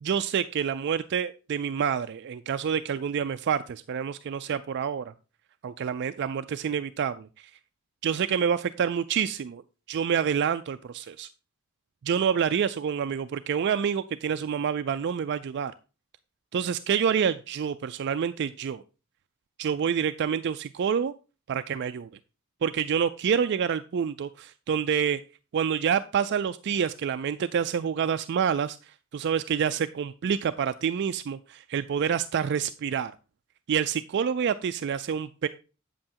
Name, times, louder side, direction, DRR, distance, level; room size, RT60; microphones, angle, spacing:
voice 1, 0.0-5.1 5.6-7.3 8.0-9.6 9.9-11.3 12.0-15.7 16.5-18.8 19.6-21.1 21.5-22.1 22.6-25.2 25.5-28.8 29.1-33.1 33.7-35.5, right 7 dB, 50° right, 11 dB, 0.3 m, -27 dB
8.6 x 7.6 x 2.8 m, 0.32 s
head